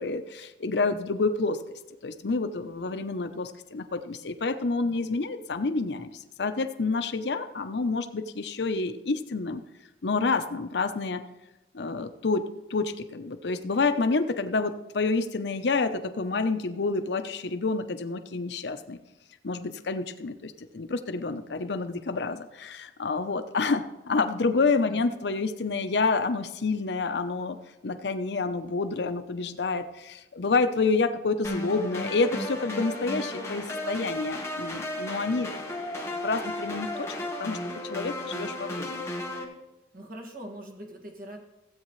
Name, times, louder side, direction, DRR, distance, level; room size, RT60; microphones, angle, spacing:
voice 1, 0.0-1.6 2.0-6.1 6.4-9.6 10.0-11.2 11.7-19.0 19.4-27.6 27.8-35.5 35.9-37.1 37.4-37.6 37.8-39.0, left 3 dB, 80° left, 9 dB, 0.7 m, -28 dB
sound 1, 31.4-39.4, left 1 dB, 15° left, 1.3 m, -34 dB
voice 2, 39.9-41.4, right 1 dB, 50° right, 0 dB, 1.9 m, -42 dB
16.0 x 8.3 x 3.2 m, 1.0 s
head